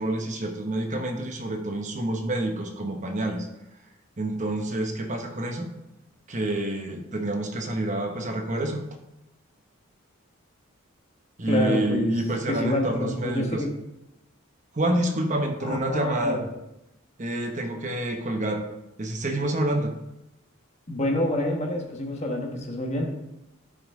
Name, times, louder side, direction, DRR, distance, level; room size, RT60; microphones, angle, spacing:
voice 1, 0.0-3.5 4.2-5.7 6.3-8.8 11.4-13.6 14.7-16.4 17.2-18.6 19.0-19.9, right 1 dB, 35° right, 4 dB, 1.0 m, -28 dB
voice 2, 11.4-13.8 15.6-16.5 20.9-23.2, left 1 dB, 30° left, 1 dB, 1.3 m, -27 dB
11.0 x 5.2 x 3.7 m, 0.90 s
head